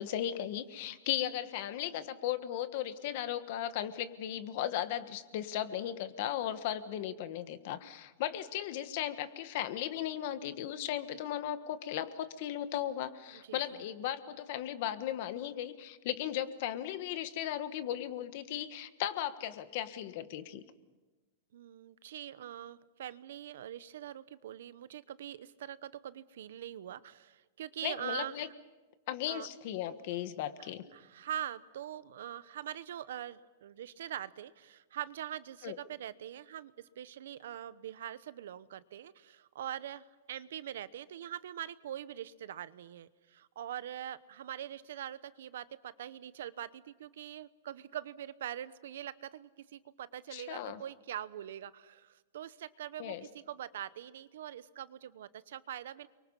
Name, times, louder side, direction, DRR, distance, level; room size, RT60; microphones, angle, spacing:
voice 1, 0.0-20.6 27.8-28.5 29.1-30.8 35.6-35.8 50.3-50.8 53.0-53.2, left 11 dB, 40° left, 11 dB, 1.4 m, -36 dB
voice 2, 13.5-13.8 21.5-28.5 29.3-29.5 30.6-56.1, right 11 dB, 65° right, 16 dB, 0.9 m, -43 dB
30.0 x 23.5 x 5.6 m, 1.2 s
supercardioid pair, 175°, 0 cm